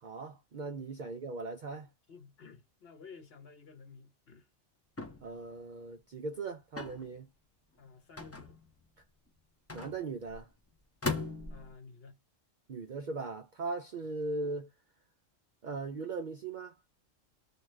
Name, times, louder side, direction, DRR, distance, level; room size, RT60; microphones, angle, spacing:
voice 1, 0.0-1.9 5.2-7.3 9.7-10.5 12.7-14.7 15.6-16.7, right 3 dB, 60° right, 0.5 m, -39 dB
voice 2, 2.1-4.5 7.8-8.6 11.5-12.2, left 5 dB, 55° left, 1.1 m, -53 dB
sound 1, 5.0-5.4 6.8-7.1 8.2-8.8 9.7-10.4 11.0-11.7, left 3 dB, 20° left, 0.4 m, -38 dB
2.8 x 2.3 x 3.1 m
omnidirectional pair, 1.3 m